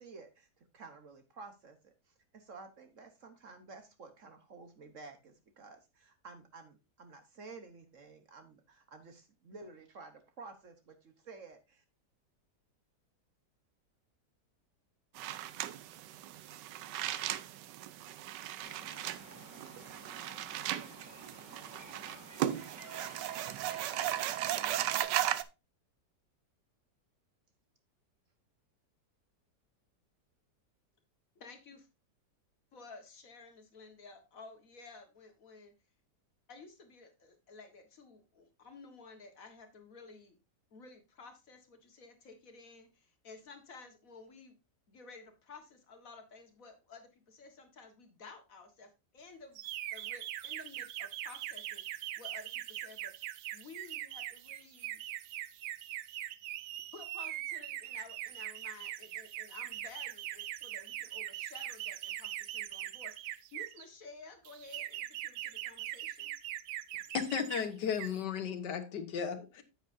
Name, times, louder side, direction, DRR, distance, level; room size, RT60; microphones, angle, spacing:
voice 1, 0.0-11.8, right 4 dB, 50° right, 1.3 m, -52 dB
sound 1, 15.2-25.4, right 12 dB, 90° right, 1.3 m, -37 dB
sound 2, 18.6-25.0, right 1 dB, 10° left, 3.4 m, -52 dB
voice 2, 31.4-31.9 32.7-35.7 36.5-40.4 40.7-44.6 44.9-49.6 49.9-55.0 56.9-66.3, left 4 dB, 55° left, 1.9 m, -53 dB
sound 3, 49.6-63.8 64.4-67.6 67.9-68.2, right 13 dB, 70° right, 1.0 m, -41 dB
voice 3, 67.1-69.6, left 7 dB, 80° left, 1.7 m, -35 dB
9.7 x 8.1 x 2.6 m
omnidirectional pair, 1.8 m